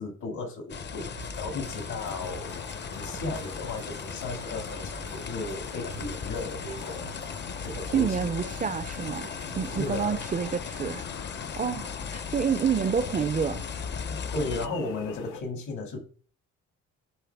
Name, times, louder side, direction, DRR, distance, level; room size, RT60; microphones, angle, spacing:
voice 1, 0.0-7.1 7.6-8.1 9.7-10.2 14.1-16.0, left 3 dB, 75° left, 2.2 m, -35 dB
sound 1, 0.7-14.7, left 6 dB, 35° left, 0.6 m, -37 dB
sound 2, 1.1-10.6, right 6 dB, 80° right, 0.9 m, -47 dB
sound 3, 2.0-15.4, left 7 dB, 90° left, 0.9 m, -44 dB
voice 2, 7.9-11.1 11.6-13.7, right 7 dB, 25° right, 0.4 m, -28 dB
10.5 x 4.0 x 3.5 m
cardioid pair, 90°, 30 cm